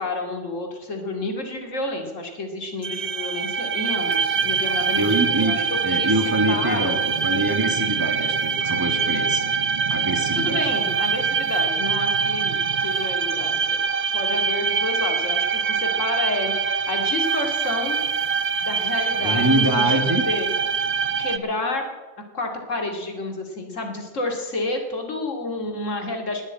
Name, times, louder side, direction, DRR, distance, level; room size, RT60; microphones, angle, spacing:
voice 1, 0.0-6.9 10.3-13.8 14.1-18.0 18.6-20.5 21.2-21.9 22.3-26.5, left 2 dB, 85° left, 3 dB, 2.8 m, -30 dB
sound 1, 2.8-21.4, right 5 dB, 45° right, 0.6 m, -24 dB
voice 2, 5.0-5.6 5.8-9.4 9.9-10.6 19.2-20.2, right 1 dB, 15° right, 4 dB, 1.9 m, -24 dB
20.0 x 7.4 x 8.8 m, 1.2 s
omnidirectional pair, 1.3 m